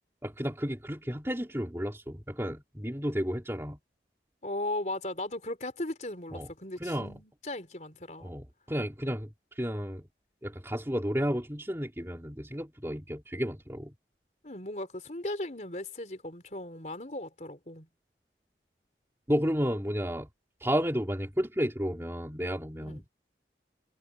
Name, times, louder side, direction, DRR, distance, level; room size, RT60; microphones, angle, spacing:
voice 1, 0.2-3.8 6.3-6.5 6.8-7.1 8.2-10.1 10.4-13.9 19.3-20.3 20.6-23.1, equal, 15° right, 4.0 m, -32 dB
voice 2, 4.4-8.3 14.4-17.9 22.8-23.0, left 1 dB, 40° left, 4.3 m, -37 dB
head